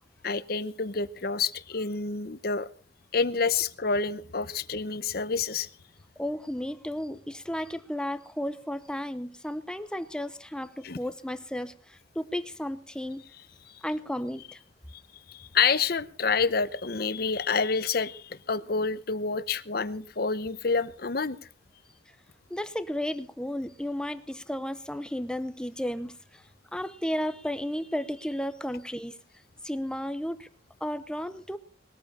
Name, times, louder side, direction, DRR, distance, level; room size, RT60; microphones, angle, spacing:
voice 1, 0.2-2.7 3.1-5.7 10.8-11.0 15.3-21.4, left 5 dB, 55° left, 15 dB, 0.8 m, -28 dB
voice 2, 6.2-13.2 13.8-14.6 22.5-26.4 26.7-29.2 29.6-30.5 30.8-31.6, equal, 5° left, 12 dB, 0.8 m, -33 dB
20.5 x 14.0 x 4.2 m, 0.42 s
head